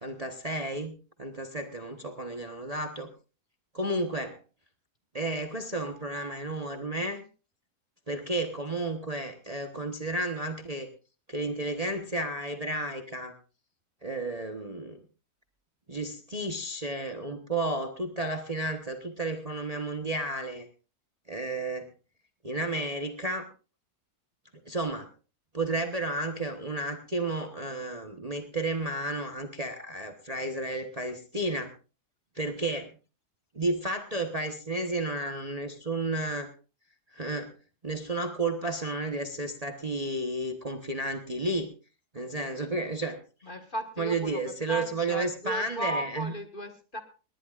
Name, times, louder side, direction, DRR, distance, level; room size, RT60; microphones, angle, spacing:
voice 1, 0.0-3.1 3.7-4.4 5.1-7.2 8.1-10.9 11.3-13.3 14.0-15.0 15.9-20.7 21.3-21.9 22.4-23.4 24.7-25.1 25.5-31.7 32.3-32.9 33.5-36.5 37.1-37.5 37.8-41.7 42.1-43.2 44.0-46.3, right 2 dB, 25° right, 5 dB, 1.2 m, -32 dB
voice 2, 43.4-47.0, right 1 dB, 30° left, 5 dB, 1.8 m, -36 dB
20.0 x 18.5 x 2.5 m, 0.34 s
omnidirectional pair, 1.7 m